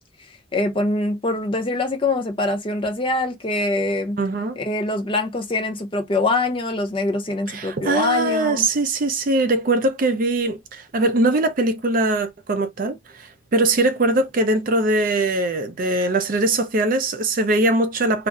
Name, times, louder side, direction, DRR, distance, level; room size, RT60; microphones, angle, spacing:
voice 1, 0.5-4.2 4.6-8.7, left 2 dB, 25° left, 0.6 m, -24 dB
voice 2, 4.2-4.6 7.5-18.3, right 2 dB, 45° right, 0.4 m, -21 dB
2.4 x 2.1 x 3.6 m
head